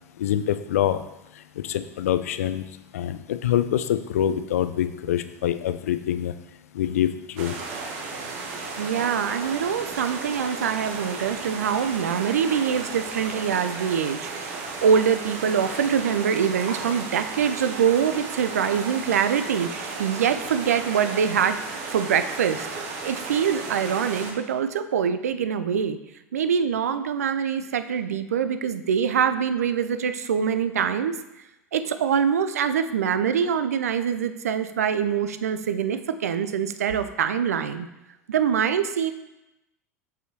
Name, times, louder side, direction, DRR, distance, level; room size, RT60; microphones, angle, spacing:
voice 1, 0.2-1.0 1.6-2.6 2.9-6.3 6.7-7.5, left 11 dB, 70° left, 12 dB, 0.4 m, -25 dB
sound 1, 7.4-24.3, right 4 dB, 55° right, 1.1 m, -34 dB
voice 2, 8.8-21.6 21.9-22.7 23.0-26.0 26.3-31.2 31.7-37.9 38.3-39.1, right 7 dB, 75° right, 10 dB, 0.4 m, -24 dB
6.3 x 5.4 x 2.9 m, 0.92 s
figure-of-eight pair, 75°, 8 cm